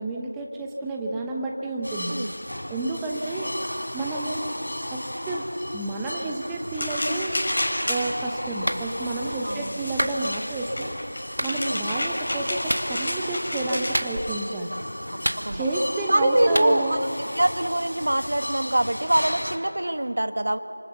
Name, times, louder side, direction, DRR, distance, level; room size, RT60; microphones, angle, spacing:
voice 1, 0.0-2.2 2.7-3.5 3.9-4.5 4.9-5.5 5.7-7.3 7.9-10.9 11.4-14.8 15.5-17.0, right 2 dB, 5° right, -1 dB, 0.9 m, -30 dB
sound 1, 1.8-19.6, equal, 85° left, 4.8 m, -35 dB
sound 2, 6.7-14.2, left 1 dB, 35° left, 5.6 m, -31 dB
Clapping, 8.7-8.9 10.0-10.2 11.4-11.5 12.7-12.9 13.9-14.4 15.2-15.8 16.5-16.7, right 1 dB, 80° right, 1.8 m, -27 dB
voice 2, 9.4-9.8 11.6-11.9 15.4-15.6 16.1-17.0 17.4-20.6, right 1 dB, 50° right, 9 dB, 1.5 m, -24 dB
29.5 x 27.0 x 7.1 m, 2.9 s
figure-of-eight pair, 175°, 0 cm